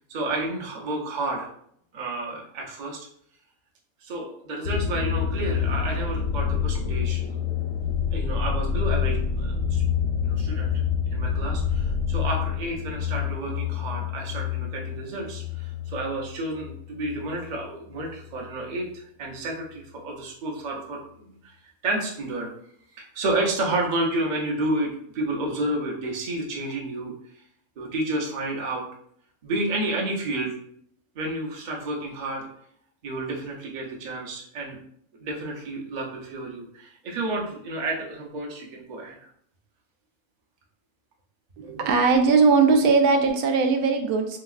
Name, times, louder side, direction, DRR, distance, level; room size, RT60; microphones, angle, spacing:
voice 1, 0.1-1.5 1.9-3.0 4.0-7.4 8.1-9.8 10.2-10.7 11.1-22.5 22.9-27.4 27.8-28.8 29.4-30.6 31.1-32.5 33.0-34.8 35.2-39.2 41.6-41.7, right 2 dB, 50° right, -2 dB, 0.5 m, -31 dB
sound 1, 4.6-17.7 18.0-18.6, left 7 dB, 70° left, 0.9 m, -27 dB
voice 2, 41.6-44.4, right 4 dB, 85° right, 4 dB, 1.1 m, -19 dB
3.4 x 2.9 x 2.3 m, 0.67 s
omnidirectional pair, 1.5 m